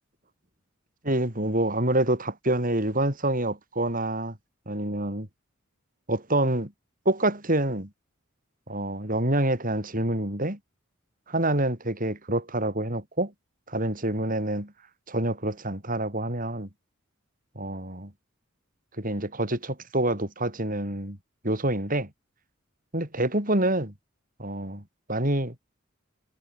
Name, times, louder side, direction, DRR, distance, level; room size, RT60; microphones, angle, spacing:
voice 1, 1.0-4.4 4.7-5.3 6.1-6.7 7.1-7.9 8.7-10.6 11.3-13.3 13.7-14.7 15.1-16.7 17.6-18.1 19.0-21.2 21.4-22.1 22.9-23.9 24.4-24.8 25.1-25.6, right 1 dB, 40° right, 7.0 m, -27 dB
head